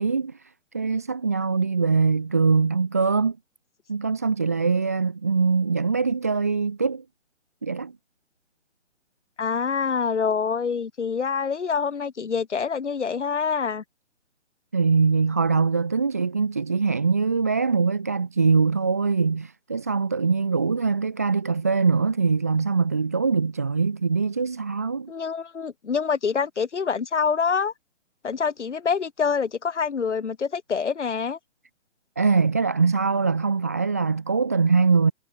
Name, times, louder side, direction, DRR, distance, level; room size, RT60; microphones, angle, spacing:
voice 1, 0.0-3.4 3.9-7.0 7.6-7.9 14.7-25.1 32.2-35.1, right 4 dB, 15° right, 0.7 m, -22 dB
voice 2, 9.4-13.8 25.1-27.7 28.2-31.4, left 6 dB, 70° left, 2.5 m, -26 dB
hypercardioid pair, 175°, 36 cm